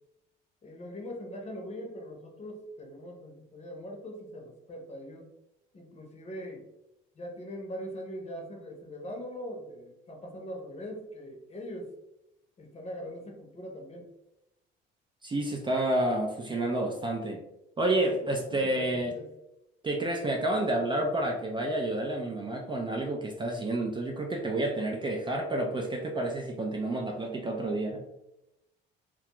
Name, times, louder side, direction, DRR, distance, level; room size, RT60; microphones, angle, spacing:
voice 1, 0.6-5.3 5.7-6.7 7.1-11.9 12.6-14.1 18.0-19.3, equal, 30° left, 1 dB, 0.7 m, -41 dB
voice 2, 15.2-17.4 17.8-19.2 19.8-28.0, right 1 dB, 25° right, 1 dB, 0.4 m, -29 dB
2.3 x 2.3 x 2.9 m, 0.88 s
cardioid pair, 90°, 21 cm